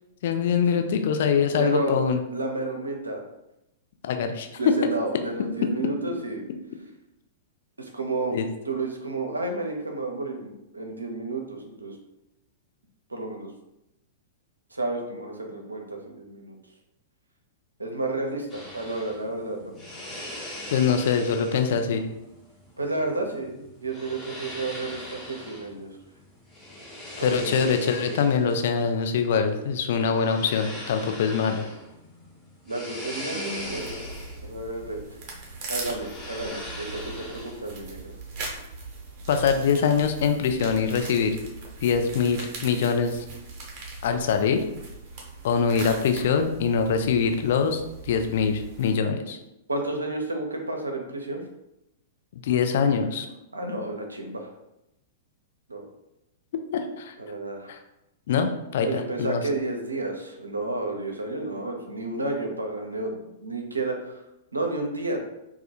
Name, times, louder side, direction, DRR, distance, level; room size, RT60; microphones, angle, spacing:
voice 1, 0.2-2.2 4.0-4.5 8.3-8.4 20.7-22.1 27.2-31.7 39.3-41.4 41.8-43.3 44.0-44.6 45.4-49.4 52.4-53.3 56.7-57.1 57.7-57.8 58.3-59.4, left 6 dB, 60° left, 6 dB, 0.3 m, -24 dB
voice 2, 1.5-2.0 2.3-3.3 4.6-6.4 7.8-8.4 8.6-12.0 13.1-13.5 14.7-16.6 17.8-19.7 22.8-26.0 27.2-27.7 28.0-28.2 30.1-30.2 32.6-34.1 34.4-35.2 35.7-38.1 49.7-51.4 53.5-54.5 55.7-55.8 57.2-57.8 58.8-64.2 64.5-65.2, right 2 dB, 85° right, 2 dB, 0.4 m, -31 dB
sound 1, 18.5-37.8, left 1 dB, 20° left, 0.8 m, -41 dB
sound 2, 33.6-48.9, right 3 dB, 45° right, 0.7 m, -40 dB
2.3 x 2.2 x 2.8 m, 0.88 s
figure-of-eight pair, 100°, 0 cm